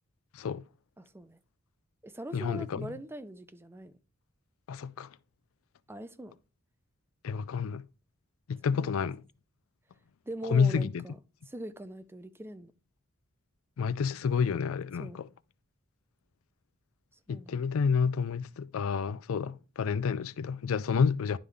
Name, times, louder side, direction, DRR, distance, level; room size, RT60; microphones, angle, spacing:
voice 1, 1.0-1.4 2.0-3.9 5.9-6.4 8.7-8.9 10.2-11.2 11.5-12.7 15.0-15.2 17.3-17.6, right 1 dB, 10° right, 0.5 m, -42 dB
voice 2, 2.3-2.9 4.7-5.1 7.2-7.8 8.5-9.2 10.4-11.0 13.8-15.3 17.3-21.4, left 6 dB, 85° left, 0.4 m, -29 dB
11.0 x 3.7 x 3.4 m
head